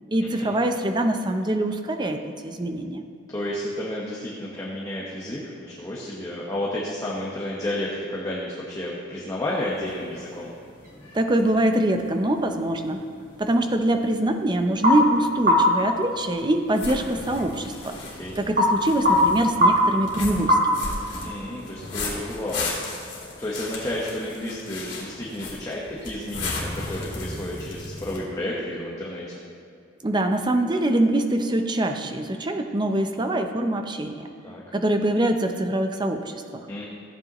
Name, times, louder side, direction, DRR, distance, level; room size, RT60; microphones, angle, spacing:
voice 1, 0.1-3.0 11.1-13.0 13.4-18.0 18.4-21.3 30.0-34.3 34.7-36.7, right 1 dB, 20° right, 6 dB, 0.6 m, -24 dB
voice 2, 3.3-10.5 18.2-18.3 21.2-22.7 23.4-29.3 34.4-34.6 36.7-36.9, left 1 dB, 15° left, -6 dB, 1.1 m, -31 dB
sound 1, 9.4-21.0, left 1 dB, 45° right, 2.0 m, -26 dB
sound 2, 9.6-28.2, left 3 dB, 60° left, 2.6 m, -37 dB
14.5 x 8.8 x 3.0 m, 2.5 s
head